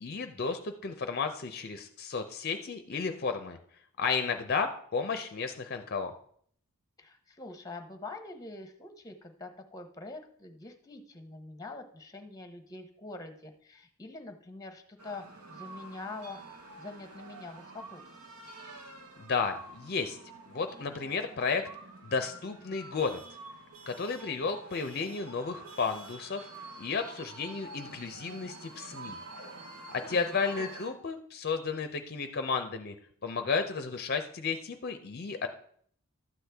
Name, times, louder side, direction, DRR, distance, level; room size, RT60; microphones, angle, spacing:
voice 1, 0.0-3.6 4.0-6.1 19.2-20.2 20.5-21.7 22.0-23.2 23.9-26.5 26.8-29.2 29.9-32.9 33.2-35.5, left 5 dB, 45° left, 7 dB, 0.5 m, -33 dB
voice 2, 7.0-16.4 16.8-18.0 30.0-30.3, left 3 dB, 15° left, 7 dB, 0.8 m, -45 dB
sound 1, 15.0-30.9, right 3 dB, 90° right, 1.6 m, -48 dB
12.0 x 8.1 x 3.4 m, 0.63 s
head